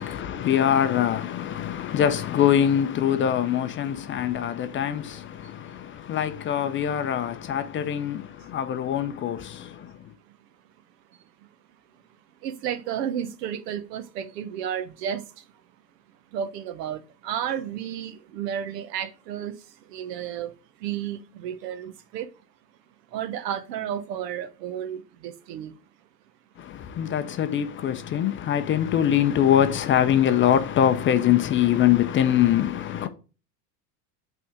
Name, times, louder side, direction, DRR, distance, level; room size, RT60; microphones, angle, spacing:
voice 1, 0.0-9.9 26.6-33.1, left 10 dB, 25° left, 0.4 m, -23 dB
voice 2, 12.4-15.5 16.3-22.3 23.1-25.8, right 9 dB, 80° right, 0.9 m, -32 dB
5.9 x 3.5 x 4.9 m
hypercardioid pair, 100°, 48 cm